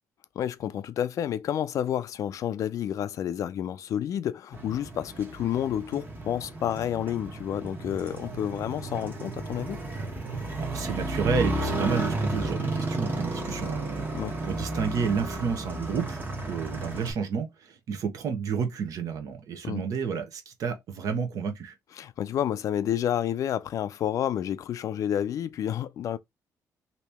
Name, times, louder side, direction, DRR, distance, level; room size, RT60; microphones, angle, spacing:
voice 1, 0.4-9.8 14.1-14.4 19.6-19.8 22.0-26.2, left 10 dB, 60° left, 0.3 m, -30 dB
Motorcycle, 4.5-17.1, right 2 dB, 35° right, 1.1 m, -33 dB
voice 2, 10.6-14.1 14.4-16.2 16.5-21.7, right 6 dB, 65° right, 0.9 m, -31 dB
3.0 x 2.8 x 3.4 m
cardioid pair, 130°, 6 cm